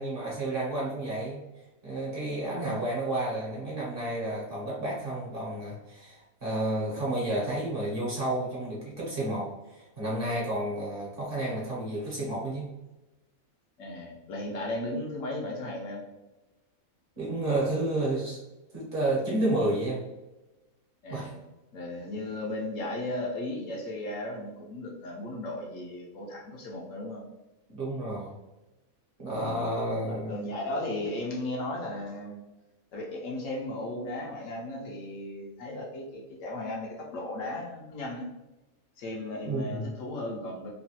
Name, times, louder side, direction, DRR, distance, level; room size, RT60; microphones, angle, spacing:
voice 1, 0.0-1.4 1.8-12.7 17.2-18.4 18.7-20.0 21.1-21.3 27.7-28.4 29.2-30.4 39.4-39.9, right 1 dB, 50° right, -5 dB, 0.8 m, -31 dB
voice 2, 13.8-16.0 21.0-21.4 21.7-27.3 29.3-32.4 32.9-38.3 39.0-40.7, left 1 dB, 70° left, -2 dB, 1.0 m, -36 dB
3.0 x 2.2 x 2.7 m, 1.0 s
omnidirectional pair, 1.5 m